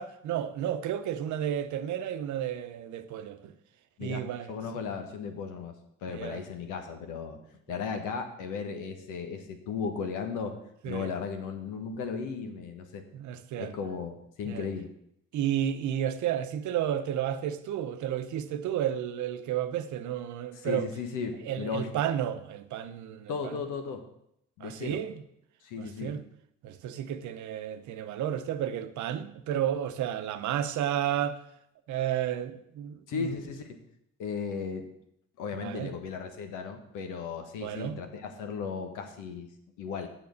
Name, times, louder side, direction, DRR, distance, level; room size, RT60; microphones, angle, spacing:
voice 1, 0.0-3.5 4.0-4.6 6.1-6.4 10.8-11.1 13.1-13.7 14.4-14.7 15.3-20.9 21.5-23.6 24.6-25.2 25.8-26.2 26.6-31.4 31.9-33.3 35.6-35.9 37.6-38.0, right 10 dB, 65° right, 0.9 m, -32 dB
voice 2, 4.0-5.7 6.0-7.4 7.7-10.6 10.9-13.0 13.6-14.9 20.5-21.9 23.3-24.0 24.6-25.0 25.6-26.1 33.1-33.8 34.2-34.9 35.4-39.5 39.8-40.1, left 5 dB, 75° left, 1.4 m, -36 dB
7.0 x 6.3 x 6.4 m
supercardioid pair, 70°, 31 cm